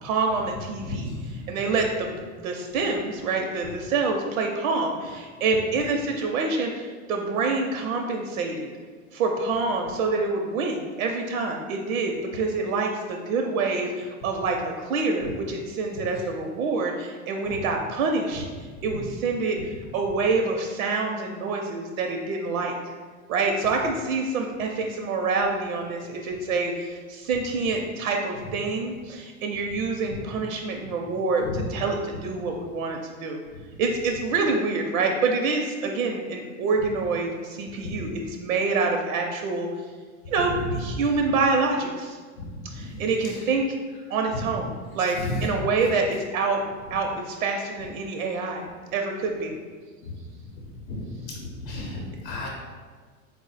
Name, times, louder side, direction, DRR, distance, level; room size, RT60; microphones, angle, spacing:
voice 1, 0.0-2.1 2.4-8.7 9.1-18.4 18.8-22.7 23.3-33.4 33.8-39.7 40.3-42.2 42.7-43.6 44.1-46.6 46.9-48.6 48.9-49.5 52.4-52.5, right 3 dB, 80° right, 2 dB, 0.6 m, -26 dB
voice 2, 0.9-1.5 17.5-17.6 30.1-30.2 31.4-31.6 37.8-38.0 42.4-42.5 42.7-42.9 45.2-45.5 50.0-50.1 50.9-52.5, left 2 dB, 40° left, -2 dB, 0.7 m, -33 dB
4.2 x 2.1 x 4.0 m, 1.5 s
supercardioid pair, 160°, 42 cm